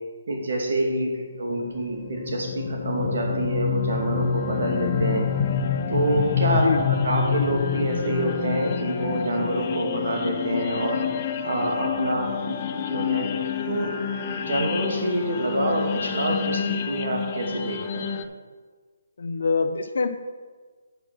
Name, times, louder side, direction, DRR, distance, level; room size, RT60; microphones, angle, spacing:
voice 1, 0.3-1.1 1.4-5.3 5.9-11.0 11.4-13.3 13.7-18.1, right 1 dB, 65° right, 0 dB, 2.4 m, -27 dB
sound 1, 1.5-18.2, left 7 dB, 35° left, 0.5 m, -28 dB
voice 2, 6.5-7.1 19.2-20.1, left 4 dB, 70° left, 9 dB, 0.7 m, -25 dB
8.2 x 5.9 x 6.1 m, 1.4 s
hypercardioid pair, 165°, 0 cm